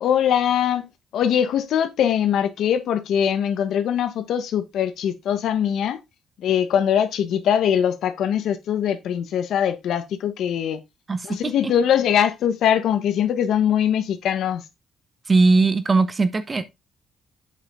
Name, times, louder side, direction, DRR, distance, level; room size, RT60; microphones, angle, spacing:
voice 1, 0.0-6.0 6.4-10.8 11.2-14.6, left 9 dB, 75° left, 1.2 m, -22 dB
voice 2, 15.3-16.6, right 3 dB, 30° right, 1.2 m, -19 dB
8.2 x 5.5 x 3.7 m
cardioid pair, 90°, 0 cm